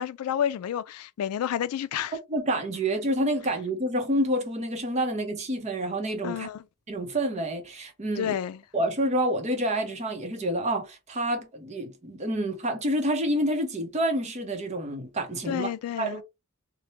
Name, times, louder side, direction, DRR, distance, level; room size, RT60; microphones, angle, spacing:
voice 1, 0.0-2.2 6.2-6.6 8.2-8.6 15.5-16.2, left 9 dB, 90° left, 0.3 m, -30 dB
voice 2, 2.3-6.5 6.9-8.3 8.7-15.7 16.0-16.2, right 1 dB, 30° right, 0.7 m, -28 dB
3.1 x 2.1 x 2.7 m
head